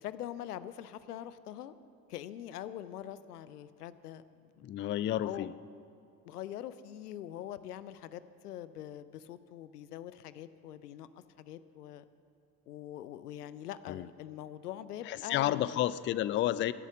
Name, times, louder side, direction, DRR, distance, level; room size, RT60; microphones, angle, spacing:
voice 1, 0.0-1.7 2.1-4.6 5.2-5.5 6.2-11.1 11.4-12.1 12.7-15.8, left 11 dB, 80° left, 15 dB, 0.6 m, -43 dB
voice 2, 4.6-5.5 13.9-14.1 15.0-16.7, left 13 dB, 25° left, 18 dB, 0.4 m, -31 dB
16.0 x 10.5 x 7.1 m, 2.4 s
figure-of-eight pair, 50°, 46 cm